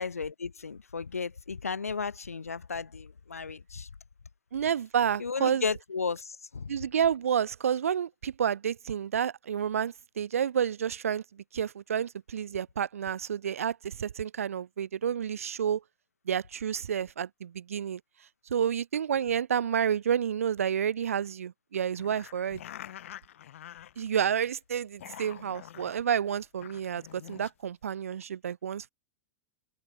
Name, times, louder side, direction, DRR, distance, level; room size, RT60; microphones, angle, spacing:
voice 1, 0.0-3.9 5.2-6.7, left 5 dB, 80° left, 0.9 m, -34 dB
voice 2, 4.5-5.6 6.7-15.8 16.3-18.0 18.5-22.6 24.0-28.9, right 8 dB, 70° right, 0.6 m, -30 dB
sound 1, 22.0-24.4 24.8-26.0 26.4-27.5, left 11 dB, 60° left, 1.1 m, -47 dB
open air
figure-of-eight pair, 95°, 8 cm